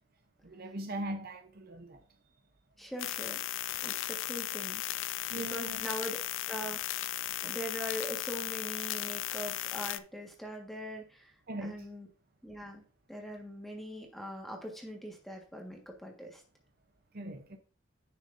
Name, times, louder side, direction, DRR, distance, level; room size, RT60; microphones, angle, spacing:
voice 1, 0.4-2.0 5.3-5.9 11.5-11.9 17.1-17.6, right 1 dB, 45° right, 0.7 m, -40 dB
voice 2, 2.8-3.4 3.8-4.8 5.3-6.2 6.5-11.3 11.6-12.1 12.4-12.8 13.1-16.4, equal, ahead, 1.5 m, -42 dB
sound 1, 3.0-10.0, left 14 dB, 65° left, 0.4 m, -36 dB
10.5 x 6.5 x 2.6 m
head